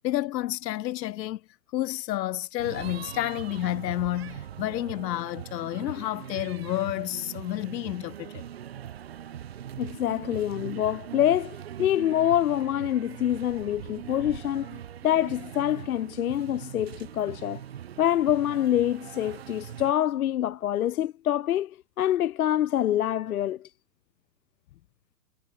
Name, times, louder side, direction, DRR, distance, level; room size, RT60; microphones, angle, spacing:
voice 1, 0.0-1.4 1.7-8.4, left 15 dB, 90° left, 0.7 m, -30 dB
sound 1, 2.6-19.9, right 10 dB, 40° right, 0.6 m, -41 dB
voice 2, 9.8-17.6 18.0-23.7, left 11 dB, 60° left, 0.9 m, -26 dB
hypercardioid pair, 180°, 49 cm